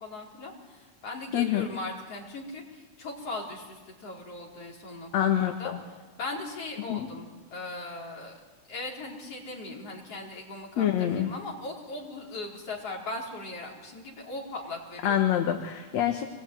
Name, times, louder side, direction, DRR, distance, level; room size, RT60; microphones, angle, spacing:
voice 1, 0.0-5.7 6.2-7.3 7.5-8.3 8.7-15.2, left 2 dB, 50° left, -2 dB, 5.4 m, -39 dB
voice 2, 1.3-1.7 5.1-5.8 6.9-7.1 10.8-11.3 15.0-16.3, left 10 dB, 70° left, 4 dB, 2.6 m, -26 dB
25.5 x 20.5 x 9.3 m, 1.3 s
omnidirectional pair, 3.4 m